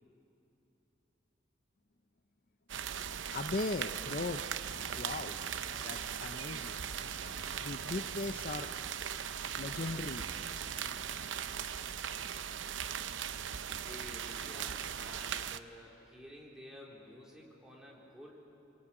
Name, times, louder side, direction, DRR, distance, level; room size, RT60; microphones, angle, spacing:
sound 1, 2.7-15.6, right 8 dB, 90° right, 0.7 m, -39 dB
voice 1, 3.3-4.4 5.0-5.4 5.8-6.8 7.6-8.7 9.6-10.3, left 3 dB, 50° left, 9 dB, 0.6 m, -38 dB
sound 2, 4.6-6.3 6.9-12.0, left 1 dB, 75° left, 3.7 m, -54 dB
voice 2, 13.7-18.5, equal, 5° right, -4 dB, 4.0 m, -52 dB
27.0 x 24.0 x 8.8 m, 2.9 s
head